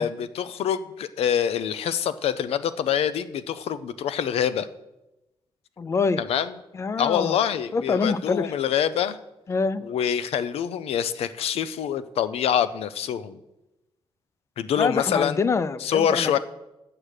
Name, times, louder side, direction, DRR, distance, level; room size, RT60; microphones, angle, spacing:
voice 1, 0.0-4.7 6.2-6.5 7.0-9.2 9.8-13.4 14.6-15.4 15.8-16.4, left 9 dB, 85° left, 14 dB, 0.5 m, -25 dB
voice 2, 5.8-6.2 6.7-7.4 7.7-8.5 9.5-9.8 14.8-16.4, left 4 dB, 30° left, 16 dB, 0.3 m, -25 dB
8.8 x 6.7 x 6.5 m, 0.96 s
wide cardioid pair, 170°, 10 cm